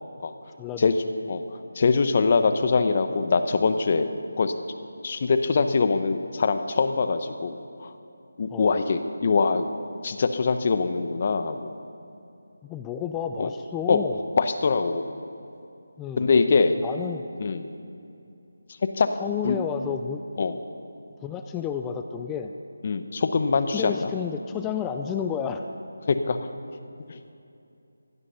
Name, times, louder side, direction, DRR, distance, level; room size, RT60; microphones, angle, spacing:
voice 1, 0.6-0.9 8.5-8.8 12.6-14.2 16.0-16.3 16.8-17.2 19.2-20.2 21.2-22.5 23.7-25.6, left 8 dB, 10° left, 6 dB, 0.4 m, -31 dB
voice 2, 1.7-4.1 4.4-4.5 5.0-7.9 8.4-9.7 10.0-11.7 13.4-13.5 13.9-14.0 14.4-15.0 16.2-16.8 17.4-17.7 19.0-19.1 19.4-19.6 20.4-20.6 22.8-24.1 26.1-26.4 27.1-27.2, left 4 dB, 40° left, 9 dB, 0.8 m, -23 dB
16.0 x 11.0 x 5.7 m, 2.7 s
figure-of-eight pair, 165°, 0 cm